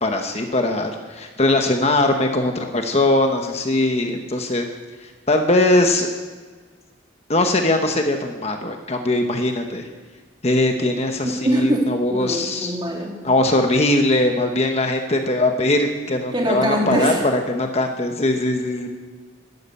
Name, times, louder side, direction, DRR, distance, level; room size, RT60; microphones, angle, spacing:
voice 1, 0.0-4.6 5.0-6.1 7.3-9.9 10.4-12.7 13.2-18.9, left 2 dB, 35° left, 4 dB, 1.1 m, -20 dB
voice 2, 11.2-13.3 16.3-17.2, equal, 25° right, -1 dB, 2.6 m, -23 dB
12.0 x 11.0 x 8.5 m, 1.4 s
head